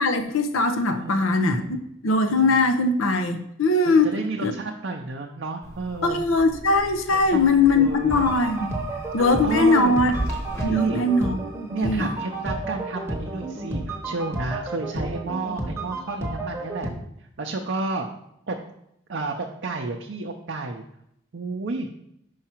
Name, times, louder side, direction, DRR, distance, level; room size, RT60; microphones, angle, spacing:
voice 1, 0.0-4.1 4.4-4.5 6.0-8.7 9.1-10.1 10.6-12.1, left 3 dB, 85° left, 7 dB, 0.7 m, -21 dB
voice 2, 0.9-1.7 2.3-2.6 3.8-6.2 7.1-8.2 8.9-10.0 10.7-11.1 11.7-16.9 17.4-18.1 18.5-18.6 19.1-20.8 21.3-21.9, right 3 dB, 60° right, 1 dB, 0.5 m, -31 dB
sound 1, 5.6-10.6, right 1 dB, 15° left, 1.0 m, -37 dB
sound 2, 8.1-16.9, right 2 dB, 15° right, 0.9 m, -31 dB
5.8 x 4.7 x 4.4 m, 0.75 s
head